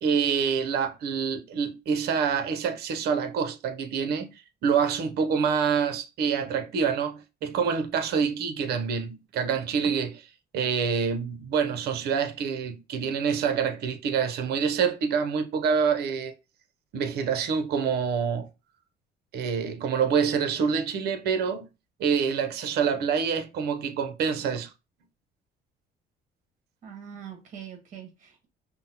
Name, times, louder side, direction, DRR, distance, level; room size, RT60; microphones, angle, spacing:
voice 1, 0.0-4.3 4.6-10.3 10.5-16.3 16.9-18.5 19.3-21.7 22.0-24.7, right 6 dB, 70° right, 0.7 m, -26 dB
voice 2, 26.8-28.5, right 8 dB, 50° right, 1.4 m, -43 dB
5.4 x 2.1 x 2.8 m
cardioid pair, 110°, 17 cm